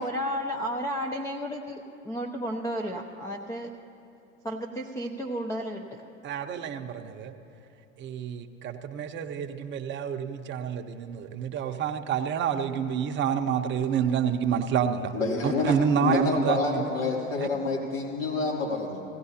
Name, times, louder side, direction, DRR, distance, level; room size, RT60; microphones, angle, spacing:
voice 1, 0.0-3.8 4.4-6.0, equal, 10° left, 2 dB, 0.5 m, -32 dB
voice 2, 6.2-7.3 8.0-15.1 15.4-16.9 17.4-17.5, right 8 dB, 30° right, 6 dB, 0.8 m, -28 dB
voice 3, 15.1-19.0, left 3 dB, 80° left, -3 dB, 3.0 m, -28 dB
17.0 x 16.0 x 2.8 m, 2.9 s
hypercardioid pair, 95°, 38 cm